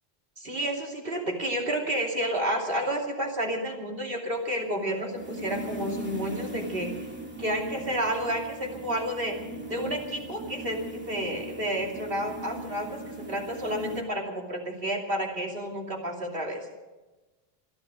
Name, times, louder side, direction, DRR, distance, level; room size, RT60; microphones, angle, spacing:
voice 1, 0.4-6.9 7.4-9.3 9.7-13.0 13.3-16.6, equal, 65° right, 0 dB, 3.0 m, -30 dB
sound 1, 4.4-14.0, right 2 dB, 10° right, 2.7 m, -39 dB
26.5 x 10.5 x 5.0 m, 1.1 s
omnidirectional pair, 1.0 m